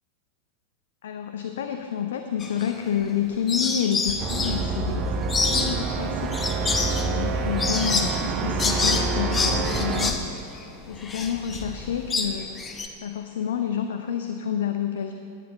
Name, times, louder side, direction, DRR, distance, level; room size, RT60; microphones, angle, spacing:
voice 1, 1.0-6.5 7.1-10.3 10.6-15.1, left 8 dB, 60° left, 7 dB, 0.6 m, -29 dB
sound 1, 2.4-3.2 3.5-12.9, left 4 dB, 20° left, 1.0 m, -28 dB
sound 2, 4.2-10.1, right 3 dB, 30° right, 0.9 m, -27 dB
18.5 x 9.9 x 3.8 m, 2.7 s
figure-of-eight pair, 90°, 0 cm